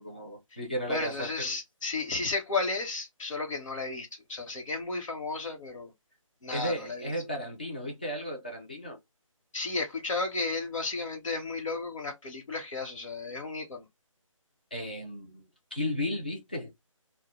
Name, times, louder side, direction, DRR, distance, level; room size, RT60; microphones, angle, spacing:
voice 1, 0.0-1.6 6.5-9.0 14.7-15.4 15.7-16.7, left 1 dB, 15° left, 0.3 m, -34 dB
voice 2, 0.9-5.9 6.4-7.1 9.5-13.8, left 3 dB, 65° left, 0.9 m, -33 dB
2.1 x 2.0 x 2.9 m
figure-of-eight pair, 160°, 17 cm